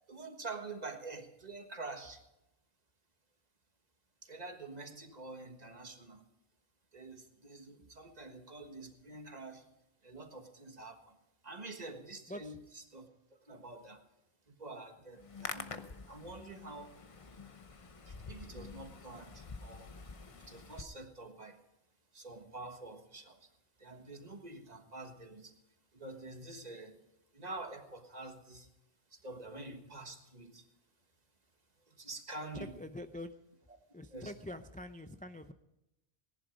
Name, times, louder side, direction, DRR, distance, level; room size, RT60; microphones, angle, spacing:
voice 1, 0.1-2.2 4.2-6.2 6.9-9.7 10.0-11.2 11.4-14.0 14.5-17.0 18.1-19.9 20.2-21.6 22.1-23.5 23.8-25.5 25.9-27.0 27.3-28.7 29.1-30.6 31.9-32.8 34.1-34.3, right 2 dB, 40° right, 6 dB, 1.5 m, -47 dB
Hands, 15.1-20.8, left 4 dB, 35° left, 0.8 m, -47 dB
voice 2, 32.8-33.3 33.9-35.5, left 1 dB, 10° left, 8 dB, 0.4 m, -45 dB
18.0 x 11.0 x 5.1 m, 0.89 s
omnidirectional pair, 1.1 m